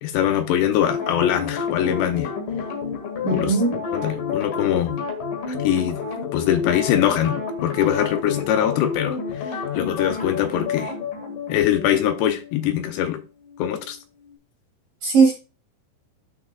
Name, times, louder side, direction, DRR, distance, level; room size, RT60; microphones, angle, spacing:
voice 1, 0.0-2.3 3.3-3.5 3.9-5.0 5.5-6.0 6.3-10.9 11.5-13.2 13.6-14.0, left 10 dB, 80° left, 2.6 m, -22 dB
sound 1, 0.8-13.9 14.2-14.3, left 5 dB, 55° left, 2.9 m, -30 dB
voice 2, 3.2-3.8 15.0-15.3, right 4 dB, 60° right, 2.5 m, -18 dB
12.5 x 5.9 x 2.3 m
omnidirectional pair, 5.6 m